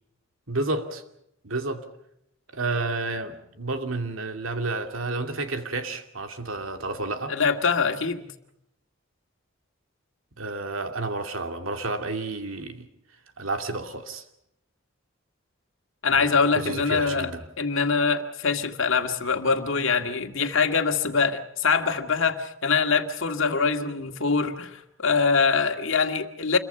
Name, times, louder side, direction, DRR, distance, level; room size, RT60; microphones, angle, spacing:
voice 1, 0.5-1.0 1.4-1.9 2.5-7.4 10.4-12.9 13.4-14.2 16.1-17.4, right 3 dB, 80° right, 2.5 m, -31 dB
voice 2, 7.3-8.3 16.0-17.3 17.6-26.6, left 5 dB, 70° left, 1.9 m, -24 dB
27.5 x 23.0 x 5.6 m
head